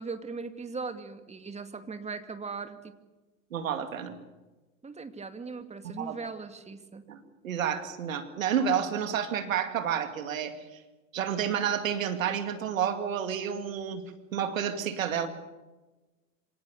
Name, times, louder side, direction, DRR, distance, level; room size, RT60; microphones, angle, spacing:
voice 1, 0.0-3.0 4.8-7.1, right 4 dB, 15° right, 8 dB, 2.3 m, -39 dB
voice 2, 3.5-4.2 6.0-6.2 7.1-10.5 11.1-14.0 14.3-15.3, right 8 dB, 75° right, 8 dB, 2.5 m, -30 dB
26.0 x 18.0 x 7.0 m, 1.1 s
hypercardioid pair, 85°, 40 cm